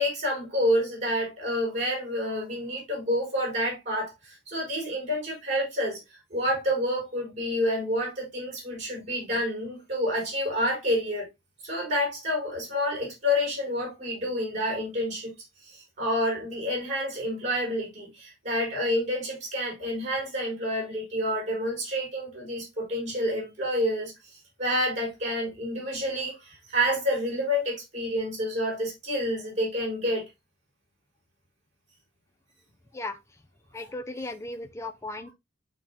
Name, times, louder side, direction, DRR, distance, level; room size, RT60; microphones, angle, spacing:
voice 1, 0.0-11.3 11.6-15.3 15.6-30.2, equal, 40° right, 5.5 m, -29 dB
voice 2, 33.7-35.3, left 2 dB, 15° left, 0.6 m, -36 dB
11.5 x 3.8 x 2.9 m
head